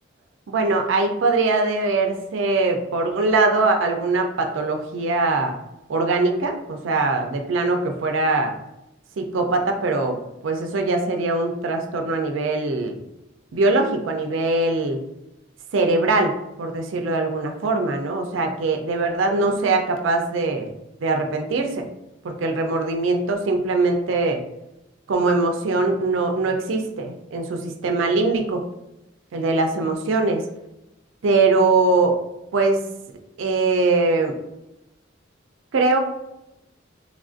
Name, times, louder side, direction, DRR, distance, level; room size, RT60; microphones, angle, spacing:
voice 1, 0.5-5.5 5.9-8.5 9.2-10.2 10.4-13.0 13.5-15.0 15.7-16.3 16.6-20.7 21.0-21.8 22.2-24.4 25.1-28.6 29.3-30.4 31.2-32.2 32.5-32.8 33.4-34.4 35.7-36.0, right 3 dB, 75° right, 4 dB, 0.4 m, -21 dB
3.4 x 2.4 x 2.5 m, 0.89 s
head